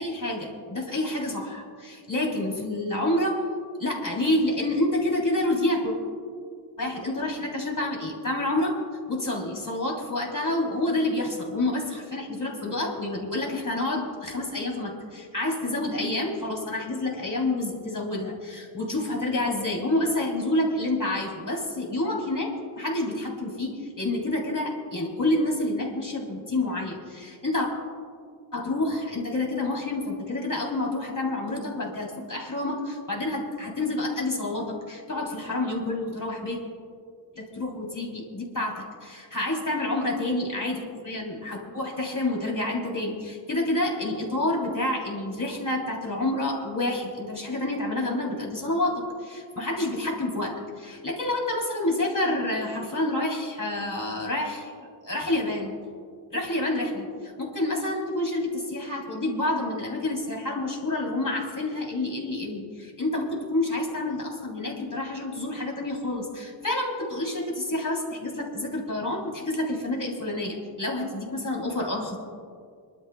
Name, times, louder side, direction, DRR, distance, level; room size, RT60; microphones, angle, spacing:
voice 1, 0.0-3.4 3.8-5.9 6.8-8.8 9.1-27.7 28.5-36.6 37.3-55.8 56.3-72.2, left 1 dB, 45° left, -1 dB, 3.5 m, -28 dB
27.0 x 12.0 x 2.3 m, 2.2 s
wide cardioid pair, 40°, 44 cm